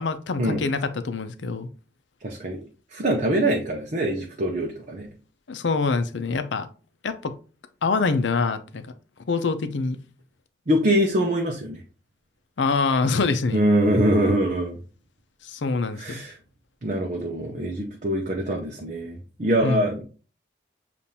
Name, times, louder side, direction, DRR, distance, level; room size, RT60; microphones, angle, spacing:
voice 1, 0.0-1.7 5.5-6.7 7.0-7.3 7.8-8.9 9.3-10.0 12.6-13.6 15.4-16.2 19.6-19.8, left 4 dB, 80° left, 0.5 m, -25 dB
voice 2, 2.2-2.6 2.9-5.1 10.7-11.8 13.5-14.8 16.0-16.4 16.8-20.0, right 1 dB, 40° right, 0.6 m, -24 dB
6.9 x 2.5 x 2.8 m
head